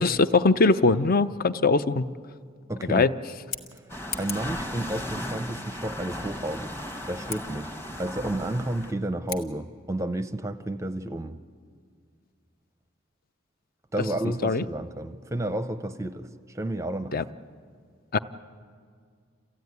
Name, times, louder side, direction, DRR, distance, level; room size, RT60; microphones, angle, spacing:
voice 1, 0.0-2.1 2.9-3.1 14.4-14.6 17.1-17.2 18.1-18.2, left 3 dB, 45° left, 14 dB, 0.6 m, -21 dB
voice 2, 2.7-3.1 3.7-3.8 4.2-6.8 7.1-7.7 8.0-11.3 13.9-17.2, right 1 dB, 15° right, 9 dB, 0.6 m, -31 dB
Scissors, 3.3-4.6 7.2-7.4 9.2-9.5, left 6 dB, 75° left, 1.4 m, -37 dB
sound 1, 3.9-8.9, left 1 dB, 10° left, 1.1 m, -36 dB
28.5 x 15.0 x 9.5 m, 2.1 s
head